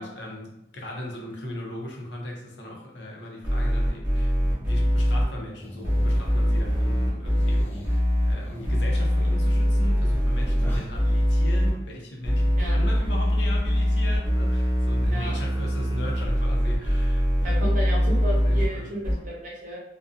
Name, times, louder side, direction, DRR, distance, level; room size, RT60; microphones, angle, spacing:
voice 1, 0.0-17.7 18.3-18.9, left 1 dB, 85° left, -1 dB, 0.6 m, -38 dB
sound 1, 3.4-5.2 5.8-8.3 8.6-11.7 12.2-18.7 19.0-19.1, equal, 25° right, 0.9 m, -22 dB
sound 2, 5.6-6.8 7.3-11.7, equal, 10° left, 0.3 m, -45 dB
voice 2, 17.4-19.8, equal, 45° right, -3 dB, 0.7 m, -33 dB
2.5 x 2.2 x 2.5 m, 0.91 s
head